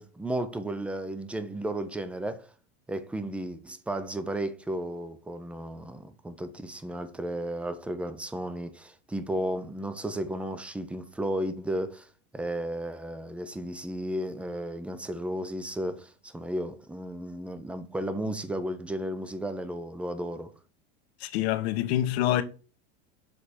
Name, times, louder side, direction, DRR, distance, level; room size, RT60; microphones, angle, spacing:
voice 1, 0.0-2.5 2.9-12.1 12.3-20.5, right 1 dB, 5° right, 0.5 m, -34 dB
voice 2, 21.2-22.4, left 13 dB, 75° left, 1.1 m, -26 dB
6.6 x 3.4 x 4.2 m
supercardioid pair, 130°, 32 cm